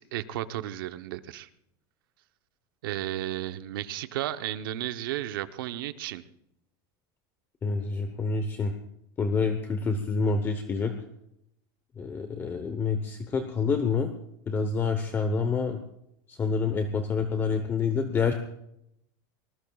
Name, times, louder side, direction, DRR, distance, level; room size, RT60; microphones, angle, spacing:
voice 1, 0.0-1.5 2.8-6.2, right 13 dB, 85° right, 11 dB, 0.9 m, -33 dB
voice 2, 7.6-8.7 9.2-10.9 12.0-14.1 14.5-15.8 16.3-18.3, left 4 dB, 20° left, 8 dB, 0.9 m, -27 dB
24.5 x 20.0 x 2.4 m, 0.78 s
supercardioid pair, 155°, 11 cm